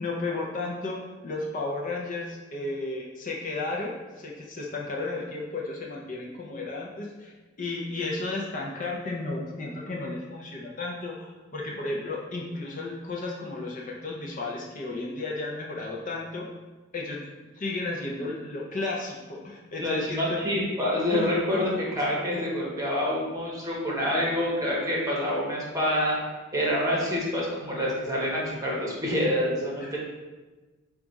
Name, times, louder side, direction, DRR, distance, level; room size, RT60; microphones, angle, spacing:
voice 1, 0.0-7.3 7.6-16.5 16.9-17.2 17.6-20.4 21.5-21.7 29.8-29.9, left 2 dB, 40° left, -2 dB, 0.5 m, -33 dB
voice 2, 19.8-26.2 26.5-30.0, left 1 dB, 15° right, -5 dB, 1.0 m, -27 dB
4.8 x 2.3 x 3.9 m, 1.2 s
head